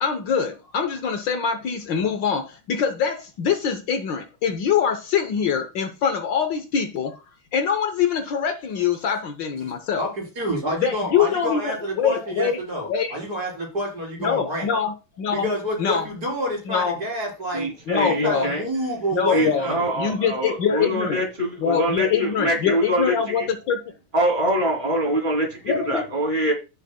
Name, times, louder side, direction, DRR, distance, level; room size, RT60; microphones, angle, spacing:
voice 1, 0.0-7.2 7.5-10.1 10.8-12.6 12.9-13.2 14.2-15.5 15.8-16.1 16.7-17.0 17.9-18.5 19.1-19.7 20.0-21.2 21.6-23.8 25.7-26.1, left 7 dB, 65° left, 1.5 m, -24 dB
voice 2, 10.0-14.7 15.3-17.7 18.0-19.9, equal, 45° right, 4.4 m, -28 dB
voice 3, 17.5-18.6 19.3-23.5 24.1-26.5, right 1 dB, 20° right, 2.9 m, -24 dB
15.0 x 6.5 x 2.2 m
omnidirectional pair, 2.3 m